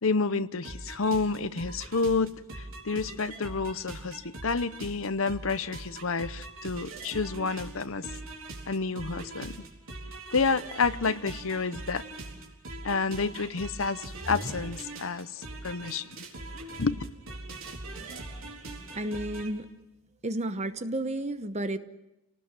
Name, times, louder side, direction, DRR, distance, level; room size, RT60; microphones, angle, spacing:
voice 1, 0.0-8.1 8.7-9.6 10.3-12.0 12.8-16.1 16.8-17.0, left 4 dB, 65° left, 0.8 m, -29 dB
sound 1, 0.6-19.5, right 2 dB, 65° right, 4.1 m, -41 dB
voice 2, 18.9-19.7 20.2-21.8, right 1 dB, 30° right, 1.0 m, -32 dB
29.0 x 19.0 x 7.5 m
head